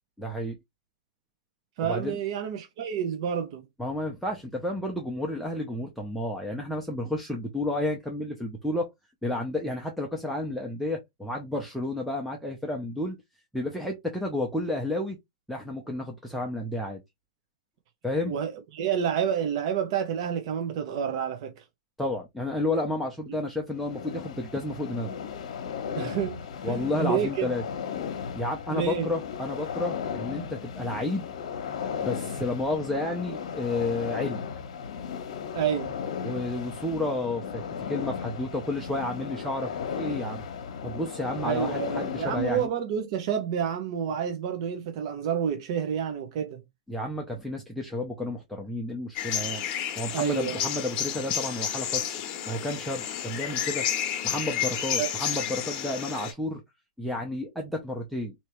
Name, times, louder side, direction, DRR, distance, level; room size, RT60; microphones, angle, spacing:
voice 1, 0.2-0.6 1.8-2.2 3.8-8.9 9.2-13.2 13.5-15.2 15.5-17.0 18.0-18.4 22.0-25.2 26.6-27.6 28.3-31.2 32.0-34.4 36.2-37.6 37.9-39.7 40.0-40.4 40.8-42.7 46.9-49.7 50.0-52.2 52.5-53.9 54.2-56.6 57.0-58.3, left 1 dB, ahead, 0.6 m, -31 dB
voice 2, 1.8-3.6 18.3-21.6 23.3-23.4 26.0-27.5 28.7-29.1 35.5-36.0 41.4-46.6 50.1-50.7 55.0-55.1, right 8 dB, 50° right, 0.8 m, -29 dB
sound 1, 23.7-42.7, left 7 dB, 70° left, 0.8 m, -35 dB
sound 2, 49.2-56.3, left 9 dB, 35° left, 0.9 m, -31 dB
3.3 x 2.8 x 3.0 m
hypercardioid pair, 145°, 4 cm